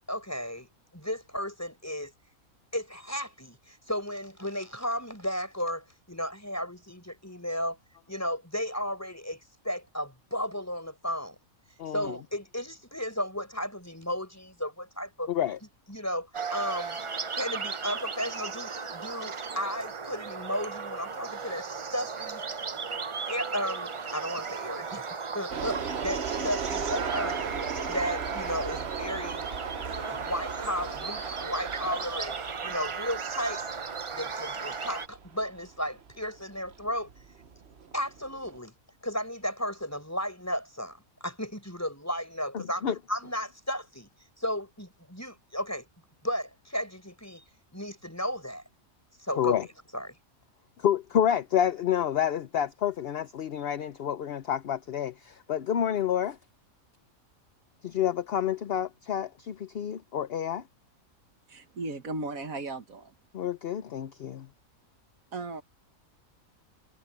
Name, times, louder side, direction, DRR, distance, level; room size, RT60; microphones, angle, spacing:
voice 1, 0.1-0.7 0.9-2.1 2.7-7.8 8.1-11.4 11.9-15.3 15.9-17.0 17.3-22.4 23.3-27.5 27.9-29.5 30.0-32.4 32.6-33.6 34.1-37.1 37.9-38.7 39.0-44.1 44.4-45.9 46.2-47.4 47.7-48.6 49.2-49.6 49.9-50.2, equal, 10° left, 6.8 m, -34 dB
voice 2, 11.8-12.1 15.3-15.6 42.5-42.9 49.4-49.7 50.8-56.4 57.8-60.6 63.3-64.5, left 9 dB, 55° left, 0.8 m, -29 dB
sound 1, 16.3-35.1, right 5 dB, 35° right, 0.5 m, -36 dB
sound 2, 25.5-38.6, right 6 dB, 50° right, 1.2 m, -37 dB
voice 3, 61.5-63.1 65.3-65.6, right 2 dB, 75° right, 1.9 m, -36 dB
omnidirectional pair, 1.5 m